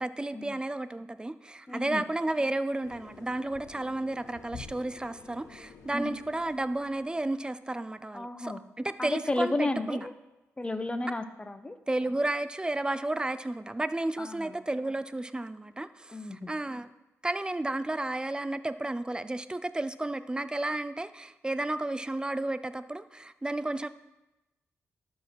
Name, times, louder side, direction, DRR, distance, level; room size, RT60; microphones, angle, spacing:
voice 1, 0.0-10.1 11.9-16.9 17.2-23.9, right 2 dB, 15° right, 13 dB, 0.5 m, -32 dB
voice 2, 1.7-2.0 5.9-6.1 8.1-8.6 9.0-10.1 10.6-11.8 14.2-14.6 16.1-16.5, left 2 dB, 20° left, 10 dB, 0.8 m, -32 dB
sound 1, 2.8-7.4, left 6 dB, 85° left, 0.9 m, -50 dB
12.0 x 4.6 x 4.5 m, 1.0 s
cardioid pair, 60°, 5 cm